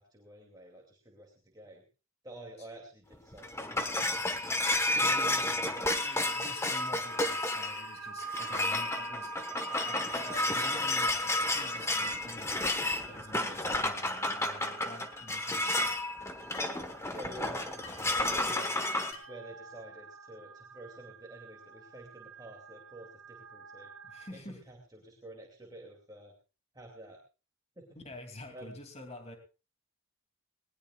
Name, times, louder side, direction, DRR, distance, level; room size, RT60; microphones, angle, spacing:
voice 1, 0.0-1.8 2.2-4.2 16.4-16.5 17.1-18.9 19.3-23.9 24.3-26.3 26.7-27.2 27.8-28.0 28.5-28.8, right 1 dB, 20° right, 0 dB, 2.6 m, -49 dB
sound 1, 3.1-19.1, left 2 dB, 15° left, 1.3 m, -31 dB
voice 2, 4.9-5.5 6.0-9.3 9.9-16.0 24.0-24.6 28.0-29.4, left 1 dB, 30° left, 4 dB, 2.8 m, -48 dB
sound 2, 5.6-24.3, right 5 dB, 65° right, 2.4 m, -48 dB
sound 3, 10.3-10.6 11.5-11.8 12.8-13.1 14.1-14.3 15.3-15.5 16.5-16.8 17.8-18.0 19.1-19.4, left 4 dB, 70° left, 4.0 m, -49 dB
20.0 x 19.5 x 2.4 m, 0.33 s
head